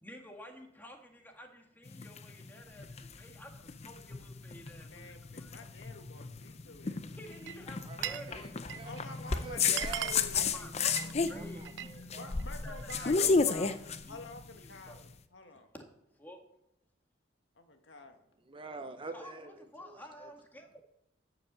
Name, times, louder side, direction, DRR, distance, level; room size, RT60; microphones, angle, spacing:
voice 1, 0.0-5.1 5.4-5.6 7.2-9.0 9.3-9.4 10.3-12.1 12.6-14.2 14.6-15.0 15.7-15.9 16.2-16.4 19.1-20.7, equal, 10° left, 2 dB, 1.7 m, -51 dB
sound 1, 1.9-15.0, left 5 dB, 35° left, 0.6 m, -33 dB
voice 2, 4.8-7.8 8.8-11.2 12.1-13.4 14.1-15.7 17.6-18.2, left 2 dB, 75° left, 5 dB, 1.5 m, -49 dB
Glass, 7.3-8.3 8.6-9.0 9.4-9.5 9.7-11.9 12.3-13.1, right 11 dB, 70° right, 0.4 m, -40 dB
voice 3, 7.8-8.5 8.8-8.9 9.4-10.5 10.8-11.0 11.3-12.3 18.5-19.6 20.2-20.3, right 3 dB, 30° right, 8 dB, 0.7 m, -46 dB
11.5 x 5.7 x 7.4 m, 0.82 s
head